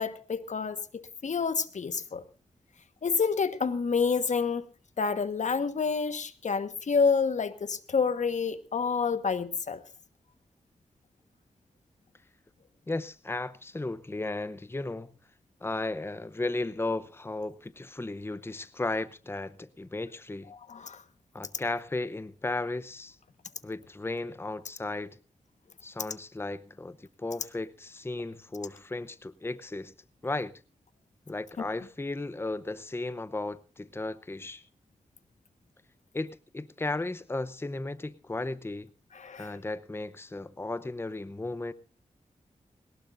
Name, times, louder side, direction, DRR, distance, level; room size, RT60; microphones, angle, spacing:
voice 1, 0.0-2.2 3.0-4.7 5.0-9.8 20.7-21.0 31.6-31.7 39.1-39.5, left 5 dB, 70° left, 1.4 m, -28 dB
voice 2, 12.9-15.1 15.6-20.5 21.3-23.2 23.6-25.2 25.8-29.9 30.2-30.5 31.3-34.6 36.1-38.9 39.4-41.7, left 2 dB, 20° left, 0.7 m, -35 dB
21.0 x 19.0 x 2.6 m
wide cardioid pair, 75°, 13 cm